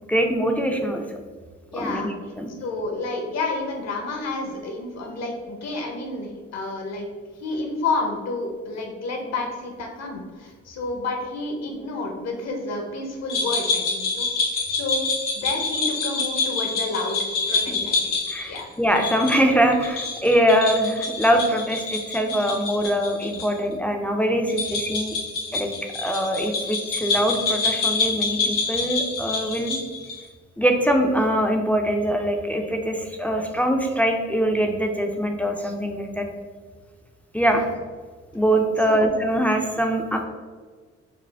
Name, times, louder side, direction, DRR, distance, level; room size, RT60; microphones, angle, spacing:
voice 1, 0.1-1.1 1.7-2.5 17.7-17.8 18.3-25.2 25.5-29.8 30.6-36.3 37.3-37.6 38.3-40.2, equal, 5° left, 3 dB, 0.4 m, -23 dB
voice 2, 1.7-2.1 2.6-7.1 7.4-15.1 15.3-18.2 18.5-18.7 37.6-37.7 38.8-39.1, left 3 dB, 60° left, 2 dB, 0.9 m, -30 dB
sound 1, 13.3-23.5 23.7-23.8 24.5-30.2, left 4 dB, 85° left, 1.2 m, -26 dB
4.8 x 2.0 x 3.3 m, 1.5 s
cardioid pair, 90°, 30 cm